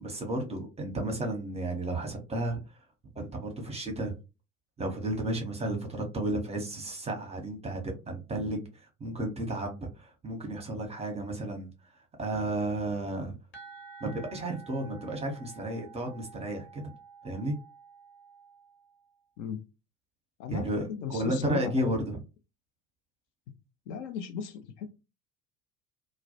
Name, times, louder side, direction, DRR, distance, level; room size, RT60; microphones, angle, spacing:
voice 1, 0.0-2.6 3.2-4.1 4.8-11.7 12.2-13.3 14.0-16.8 17.2-17.5 20.5-22.2, right 1 dB, 15° right, 0.7 m, -33 dB
sound 1, 13.5-19.1, right 5 dB, 25° left, 0.9 m, -51 dB
voice 2, 20.4-21.9 23.5-23.6 23.9-24.9, left 6 dB, 55° left, 0.5 m, -35 dB
2.2 x 2.1 x 2.7 m
figure-of-eight pair, 70°, 45 cm